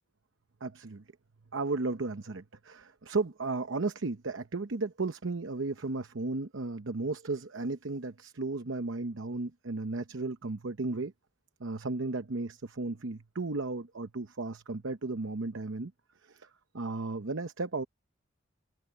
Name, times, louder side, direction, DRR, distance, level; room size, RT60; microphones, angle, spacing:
voice 1, 0.6-1.0 1.5-11.1 11.6-15.9 16.2-16.5 16.7-17.8, right 3 dB, 70° right, 0.9 m, -34 dB
head